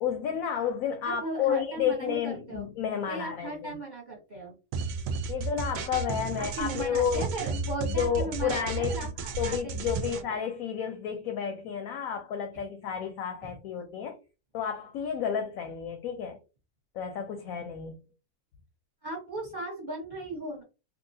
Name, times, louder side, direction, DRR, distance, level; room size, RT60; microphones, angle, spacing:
voice 1, 0.0-3.8 5.3-7.3 7.8-9.0 9.4-14.2 14.5-16.4 16.9-18.0, left 8 dB, 70° left, 0.9 m, -31 dB
voice 2, 1.0-2.7 3.1-4.6 6.4-10.4 13.4-13.6 19.0-20.6, right 2 dB, 30° right, 1.0 m, -37 dB
sound 1, 4.7-10.2, right 4 dB, 85° right, 1.2 m, -33 dB
2.9 x 2.7 x 2.6 m
omnidirectional pair, 1.8 m